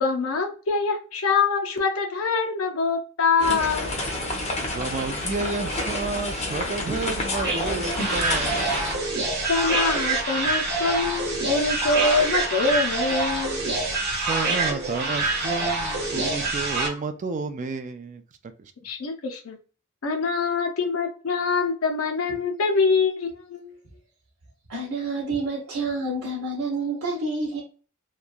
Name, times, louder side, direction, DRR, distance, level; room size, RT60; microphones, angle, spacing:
voice 1, 0.0-4.0 9.5-13.6 18.8-19.6 20.0-23.8, left 4 dB, 75° left, 0.6 m, -24 dB
sound 1, 3.4-8.9, left 1 dB, 30° left, 0.6 m, -29 dB
voice 2, 4.7-9.0 14.1-18.2 18.6-18.7, right 3 dB, 35° right, 0.3 m, -31 dB
sound 2, 7.3-16.9, right 3 dB, 50° right, 0.9 m, -26 dB
voice 3, 24.7-27.6, right 2 dB, 85° right, 0.9 m, -28 dB
2.9 x 2.3 x 2.4 m
head